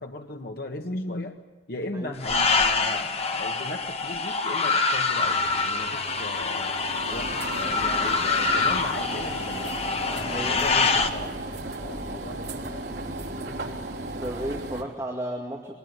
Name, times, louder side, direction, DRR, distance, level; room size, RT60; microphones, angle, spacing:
voice 1, 0.0-1.4 1.7-6.8 7.1-9.7 10.0-11.3 11.8-12.9, left 1 dB, 60° left, 3 dB, 1.5 m, -37 dB
sound 1, 2.2-11.1, left 4 dB, 35° left, 1.7 m, -25 dB
sound 2, 5.2-14.8, right 1 dB, 75° right, 3.5 m, -36 dB
voice 2, 10.0-11.0 14.2-15.8, right 1 dB, 20° right, 0 dB, 2.2 m, -34 dB
23.0 x 21.0 x 9.6 m, 1.3 s
head